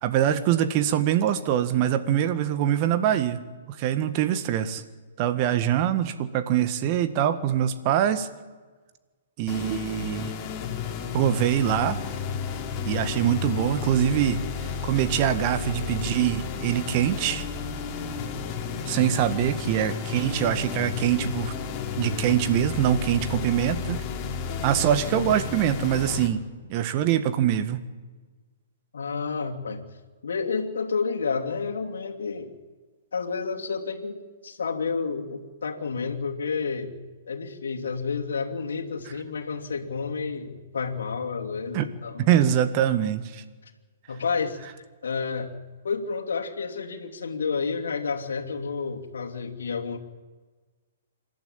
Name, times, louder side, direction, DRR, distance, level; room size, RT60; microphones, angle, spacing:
voice 1, 0.0-3.4 3.8-4.8 5.2-8.3 9.4-10.3 11.1-12.0 12.8-14.4 14.8-17.4 18.9-21.5 22.0-24.0 24.6-27.8 41.7-41.9 42.2-43.4, right 10 dB, 40° right, 11 dB, 1.6 m, -24 dB
sound 1, 9.5-26.3, left 6 dB, 30° left, 2.9 m, -32 dB
voice 2, 28.9-29.8 30.2-32.5 33.1-36.9 37.3-42.3 44.1-44.6 45.0-45.6 45.8-50.0, left 5 dB, 75° left, 2 dB, 2.8 m, -30 dB
27.0 x 12.0 x 9.0 m, 1.4 s
hypercardioid pair, 120°, 0 cm